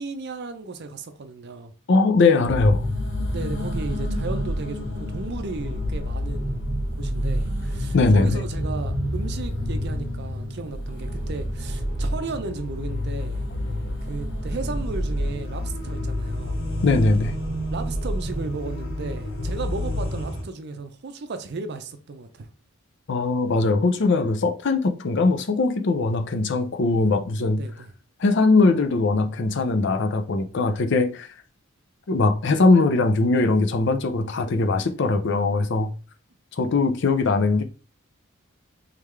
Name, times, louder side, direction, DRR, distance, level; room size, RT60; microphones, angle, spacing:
voice 1, 0.0-1.7 3.3-13.4 14.1-16.6 17.7-22.5 27.6-27.9, right 3 dB, 50° right, 0.5 m, -35 dB
voice 2, 1.9-2.9 7.9-8.4 16.8-17.4 23.1-27.6 28.2-31.3 32.1-35.9 36.5-37.6, left 3 dB, 55° left, 0.5 m, -20 dB
sound 1, 2.4-20.4, equal, 80° left, 1.7 m, -28 dB
3.7 x 3.4 x 3.2 m
head